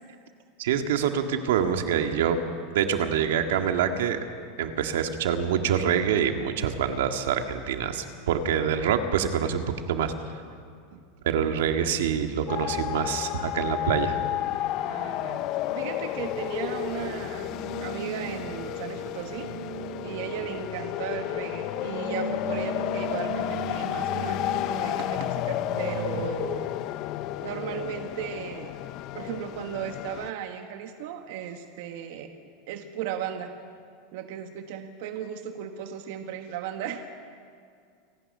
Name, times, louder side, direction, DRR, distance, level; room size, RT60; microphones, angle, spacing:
voice 1, 0.6-2.4 2.7-4.2 4.6-10.1 11.2-14.2, right 8 dB, 80° right, 6 dB, 1.9 m, -26 dB
sound 1, 12.5-30.3, left 14 dB, 35° left, 0.5 m, -32 dB
voice 2, 14.8-17.5 17.8-19.5 20.0-26.7 27.4-28.7 29.1-32.3 32.7-33.5 34.1-37.1, right 9 dB, 55° right, 5 dB, 1.5 m, -36 dB
sound 2, 17.5-26.3, right 6 dB, 35° right, 1.9 m, -39 dB
28.5 x 12.5 x 9.6 m, 2.3 s
supercardioid pair, 170°, 0 cm